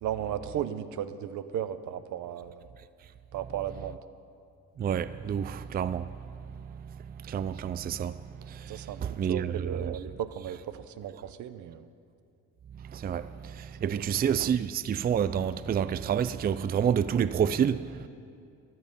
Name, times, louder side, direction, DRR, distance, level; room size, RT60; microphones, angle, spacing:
voice 1, 0.0-2.7 3.3-4.0 8.7-9.0 9.3-11.9 13.8-14.0, right 10 dB, 75° right, 0.8 m, -35 dB
voice 2, 4.8-10.0 12.8-18.1, right 8 dB, 30° right, 0.4 m, -29 dB
15.5 x 11.5 x 5.3 m
cardioid pair, 90°, 30 cm